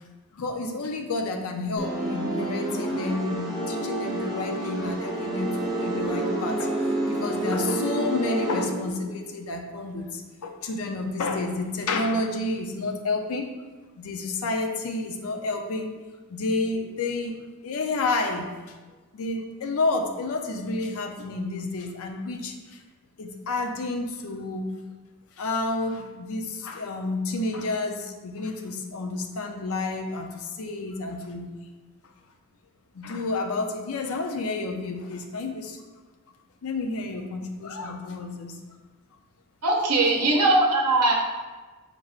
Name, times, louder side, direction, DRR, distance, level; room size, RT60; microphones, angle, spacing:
voice 1, 0.3-6.7 7.1-13.5 14.0-15.9 16.3-17.4 17.6-18.8 19.1-22.8 23.2-24.7 25.4-31.5 32.9-35.8 36.6-38.6, left 3 dB, 70° left, 4 dB, 0.5 m, -30 dB
sound 1, 1.8-8.6, right 1 dB, ahead, 1.3 m, -28 dB
voice 2, 39.6-41.1, right 2 dB, 85° right, -1 dB, 0.6 m, -20 dB
4.9 x 3.3 x 2.4 m, 1.3 s
head